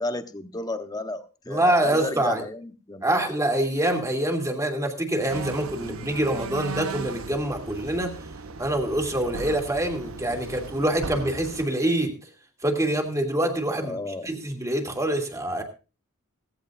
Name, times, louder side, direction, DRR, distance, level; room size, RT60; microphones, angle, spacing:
voice 1, 0.0-3.3 13.9-14.3, left 2 dB, 20° left, 8 dB, 1.0 m, -33 dB
voice 2, 1.5-2.5 3.0-8.1 8.6-12.1 12.6-14.0 14.2-15.6, right 1 dB, 15° right, 2 dB, 2.5 m, -25 dB
sound 1, 5.3-11.7, right 4 dB, 70° right, 0.9 m, -37 dB
17.0 x 15.5 x 2.5 m, 0.32 s
head